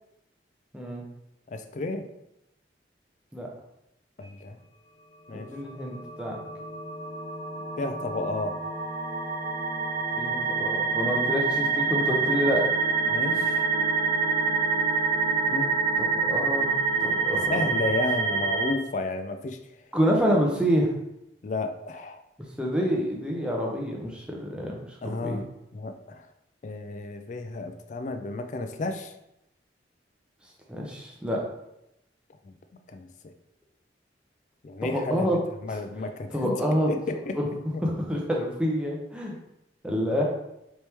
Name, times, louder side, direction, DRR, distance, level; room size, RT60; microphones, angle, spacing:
voice 1, 1.5-2.1 4.2-4.6 5.3-5.5 7.8-8.6 13.1-13.6 15.5-15.7 17.3-19.6 21.4-22.2 25.0-25.4 25.7-26.3 26.6-29.1 32.4-32.5 32.9-33.3 34.6-36.6 36.9-37.4 37.7-37.8, left 2 dB, 40° left, 7 dB, 0.3 m, -32 dB
voice 2, 5.3-6.4 10.2-12.6 16.0-16.7 17.0-17.7 19.9-20.9 22.6-24.7 25.0-25.5 30.7-31.4 34.9-35.4 36.3-36.9 37.4-37.5 37.8-39.3 39.8-40.2, equal, 5° right, -1 dB, 0.6 m, -27 dB
sound 1, 5.5-18.7, right 4 dB, 80° right, 0.9 m, -27 dB
4.3 x 3.0 x 3.4 m, 0.84 s
head